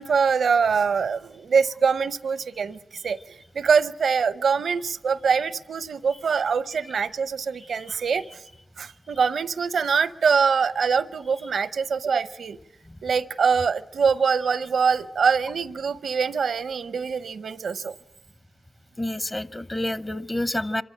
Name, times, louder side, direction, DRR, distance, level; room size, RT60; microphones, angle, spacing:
voice 1, 0.0-8.4 8.8-12.6 13.0-17.9, right 6 dB, 85° right, 16 dB, 0.7 m, -24 dB
voice 2, 19.0-20.8, left 1 dB, 25° left, 16 dB, 0.8 m, -28 dB
25.5 x 14.5 x 10.0 m, 0.96 s
cardioid pair, 50°, 0 cm